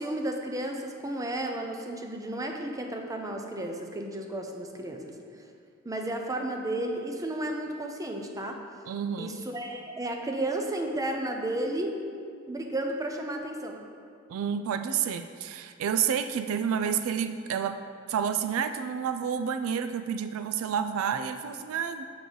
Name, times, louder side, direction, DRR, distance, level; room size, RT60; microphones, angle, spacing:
voice 1, 0.0-5.2 5.8-8.6 9.2-12.0 12.5-13.8, right 1 dB, 15° right, 3 dB, 0.5 m, -33 dB
voice 2, 8.9-9.4 14.3-17.8 18.1-22.1, right 7 dB, 70° right, 9 dB, 0.3 m, -29 dB
6.8 x 6.2 x 3.8 m, 2.3 s
head